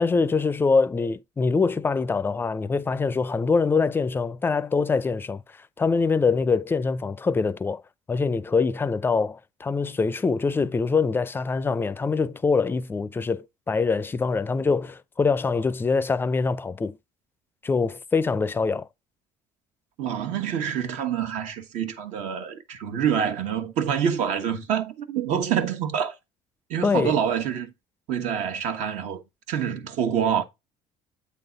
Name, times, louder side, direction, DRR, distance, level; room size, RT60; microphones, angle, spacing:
voice 1, 0.0-5.4 5.8-7.8 8.1-17.0 17.6-18.9 26.8-27.2, left 4 dB, 15° left, 0.4 m, -24 dB
voice 2, 20.0-26.1 26.7-27.7 28.1-29.2 29.5-30.4, right 8 dB, 70° right, 1.2 m, -26 dB
8.4 x 3.8 x 3.9 m
cardioid pair, 115°, 12 cm